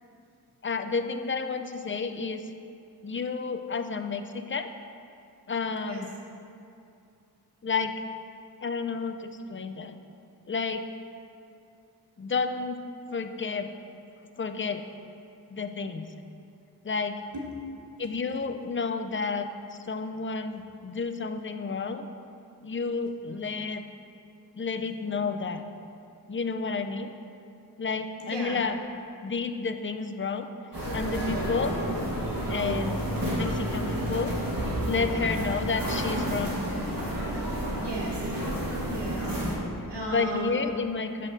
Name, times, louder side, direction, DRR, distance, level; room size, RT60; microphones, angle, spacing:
voice 1, 0.6-2.5 3.0-4.7 5.5-6.1 7.6-7.9 8.6-10.0 10.5-10.9 12.2-12.8 13.1-13.7 14.4-14.8 15.5-16.1 16.8-17.2 18.0-22.1 22.6-23.8 24.5-25.6 26.3-27.1 27.8-28.8 29.2-30.5 30.9-31.8 32.5-34.3 34.8-36.6 40.1-41.3, left 4 dB, 30° left, 7 dB, 0.4 m, -31 dB
voice 2, 28.2-28.6 37.7-38.3 38.8-39.4 39.9-40.6, right 2 dB, 85° right, -3 dB, 1.2 m, -35 dB
sound 1, 30.7-39.6, equal, 55° right, 1.7 m, -30 dB
8.4 x 3.7 x 6.4 m, 2.6 s
wide cardioid pair, 50°, 40 cm